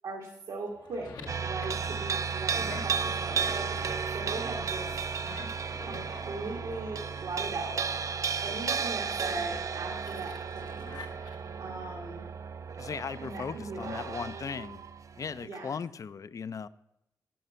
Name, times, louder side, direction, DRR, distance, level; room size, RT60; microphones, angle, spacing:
voice 1, 0.0-1.1 1.4-4.9 5.8-7.8 8.4-10.9 11.6-12.3 13.2-14.2 15.4-15.7, right 3 dB, 85° right, -2 dB, 1.4 m, -39 dB
sound 1, 0.7-7.4 7.8-11.7, left 3 dB, 75° left, 1.0 m, -48 dB
sound 2, 1.3-15.5, right 6 dB, 50° right, 0.4 m, -34 dB
voice 2, 12.8-14.8 15.2-16.7, left 6 dB, 50° left, 16 dB, 0.4 m, -37 dB
11.0 x 5.5 x 5.5 m, 0.84 s
cardioid pair, 65°, 7 cm